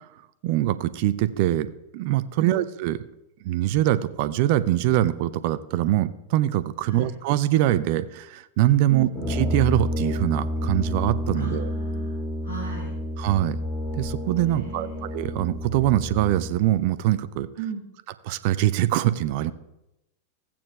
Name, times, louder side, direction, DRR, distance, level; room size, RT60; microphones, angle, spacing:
voice 1, 0.4-1.7 1.9-3.0 3.4-11.7 13.2-13.6 13.9-14.9 15.1-17.5 18.2-19.5, right 14 dB, 50° right, 14 dB, 0.4 m, -23 dB
Brass instrument, 9.1-16.6, left 1 dB, 5° left, 2.3 m, -30 dB
voice 2, 11.3-12.1 12.4-12.9 14.5-15.0 17.5-17.8, right 5 dB, 80° left, -5 dB, 2.9 m, -36 dB
15.5 x 8.6 x 2.3 m, 0.91 s
figure-of-eight pair, 90°, 0 cm